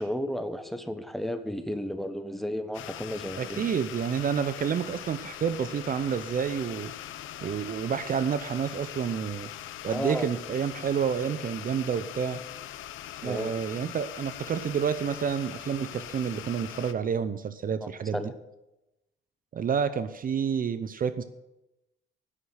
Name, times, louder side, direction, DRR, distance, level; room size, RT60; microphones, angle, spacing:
voice 1, 0.0-3.6 9.9-10.3 13.2-13.5 17.8-18.4, equal, ahead, 9 dB, 1.1 m, -33 dB
sound 1, 2.7-16.9, left 12 dB, 80° left, 0.7 m, -41 dB
voice 2, 3.4-6.9 7.4-9.5 9.8-12.4 13.2-18.2 19.5-21.2, right 7 dB, 45° right, 13 dB, 0.6 m, -29 dB
9.9 x 6.3 x 8.9 m, 0.95 s
cardioid pair, 90°, 20 cm